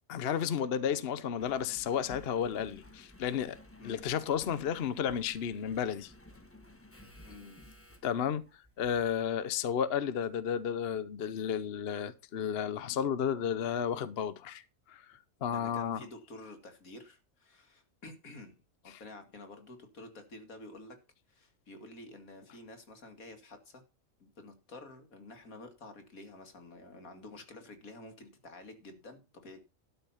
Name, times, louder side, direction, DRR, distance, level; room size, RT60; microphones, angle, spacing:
voice 1, 0.1-3.6 3.8-6.1 8.0-8.4 8.8-14.6 14.9-16.0 18.9-19.0, left 8 dB, 55° left, 0.9 m, -32 dB
Engine, 1.4-9.2 9.9-10.0, left 1 dB, 10° left, 1.2 m, -55 dB
voice 2, 7.2-7.7 15.5-18.6 18.8-21.0 21.3-23.8 24.2-29.6, left 2 dB, 80° left, 2.7 m, -50 dB
12.5 x 5.7 x 5.7 m
omnidirectional pair, 1.5 m